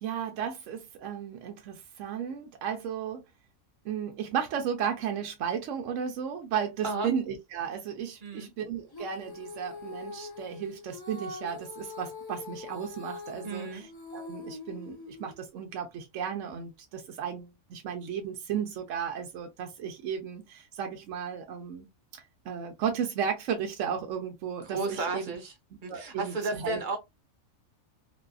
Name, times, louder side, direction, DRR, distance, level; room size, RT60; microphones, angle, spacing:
voice 1, 0.0-3.2 3.8-21.9 22.5-25.3 25.9-26.8, right 8 dB, 75° right, 0.9 m, -34 dB
Female singing, 8.9-15.4, left 3 dB, 35° left, 0.3 m, -43 dB
voice 2, 13.4-13.8 24.6-25.5 25.8-27.0, right 3 dB, 45° right, 0.8 m, -33 dB
2.7 x 2.3 x 2.2 m
omnidirectional pair, 1.4 m